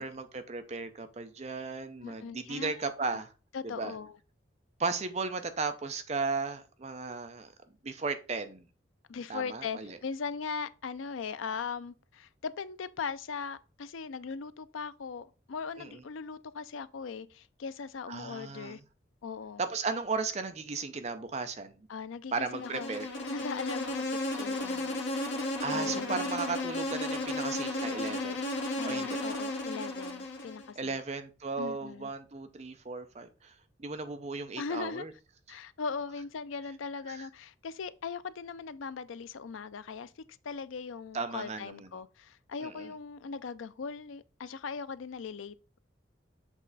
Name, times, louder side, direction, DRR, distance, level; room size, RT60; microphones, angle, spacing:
voice 1, 0.0-3.3 3.8-3.9 4.8-7.5 7.8-8.6 9.3-10.0 15.8-16.0 18.1-18.8 19.6-21.8 22.3-23.1 25.6-28.4 28.8-29.2 30.8-33.5 33.8-35.1 37.1-37.3 41.1-41.9 42.6-42.9, right 4 dB, 35° right, 0.5 m, -35 dB
voice 2, 2.0-2.9 3.5-4.2 9.1-18.8 19.2-19.6 21.9-22.9 23.3-25.0 25.7-26.3 28.7-31.0 31.6-32.1 34.6-35.1 35.5-45.8, left 5 dB, 90° left, 0.5 m, -39 dB
Insect, 22.5-30.7, left 2 dB, 70° left, 1.7 m, -34 dB
7.3 x 3.3 x 4.0 m
head